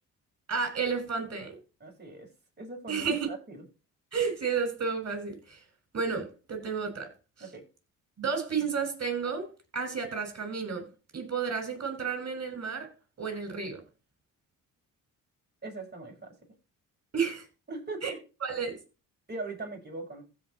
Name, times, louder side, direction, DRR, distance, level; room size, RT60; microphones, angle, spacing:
voice 1, 0.5-1.6 2.9-3.3 4.1-5.6 5.9-7.1 8.2-9.5 9.7-10.9 11.1-12.9 13.2-13.8 17.1-17.4 18.0-18.1 18.4-18.8, right 5 dB, 45° right, 6.2 m, -31 dB
voice 2, 1.8-2.3 2.6-3.6 7.4-7.6 15.6-16.3 17.7-18.2 19.3-20.2, right 3 dB, 30° right, 6.7 m, -40 dB
15.5 x 5.6 x 4.3 m
supercardioid pair, 65°, 35 cm